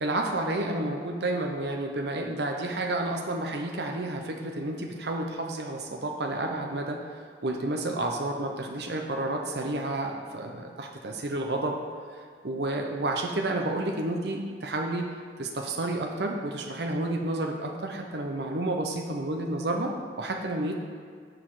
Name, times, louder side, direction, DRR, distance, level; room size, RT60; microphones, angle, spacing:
voice 1, 0.0-11.8 12.1-15.1 15.4-20.8, right 2 dB, 65° right, 2 dB, 0.7 m, -30 dB
6.4 x 5.9 x 4.7 m, 2.1 s
head